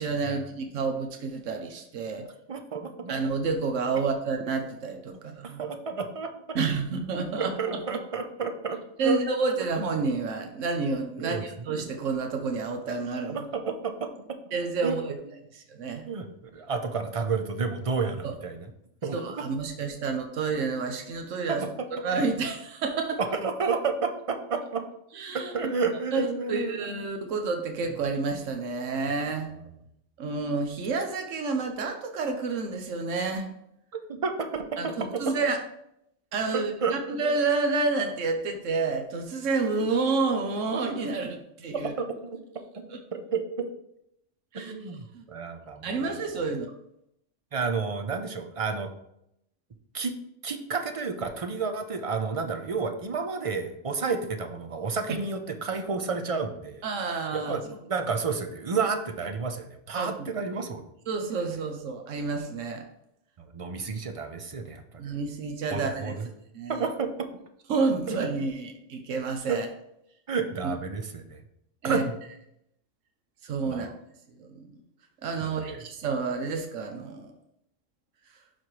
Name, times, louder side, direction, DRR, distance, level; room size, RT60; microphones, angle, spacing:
voice 1, 0.0-2.2 3.1-5.6 6.5-7.5 9.0-13.4 14.5-15.1 15.5-16.0 18.2-18.3 19.1-21.6 21.9-23.2 25.1-25.7 26.1-29.5 30.2-33.5 34.8-35.6 36.3-36.7 37.1-41.9 42.9-43.0 44.5-44.7 45.1-45.2 45.8-46.7 56.8-57.6 59.9-60.3 61.1-62.8 65.0-66.1 66.5-66.9 67.7-69.7 70.6-70.7 71.8-72.0 73.4-73.9 74.4-74.7 75.2-77.3, right 4 dB, 80° right, 4 dB, 1.2 m, -29 dB
voice 2, 2.5-3.1 5.4-6.3 7.4-9.2 9.4-9.5 11.2-11.7 13.3-14.1 14.8-14.9 16.0-16.3 16.5-18.7 19.0-19.4 21.5-21.7 23.2-24.8 25.3-26.8 29.6-29.7 34.1-35.2 36.5-37.2 42.0-42.1 43.1-43.4 44.5-46.4 47.5-48.9 49.9-50.1 50.4-56.8 57.1-60.8 63.5-65.1 65.7-66.3 66.7-67.3 68.1-68.2 69.5-69.6 70.3-71.4 71.8-72.1 73.7-73.9 75.4-75.8, right 4 dB, 35° right, 6 dB, 0.6 m, -31 dB
12.0 x 4.2 x 3.2 m, 0.78 s
omnidirectional pair, 1.3 m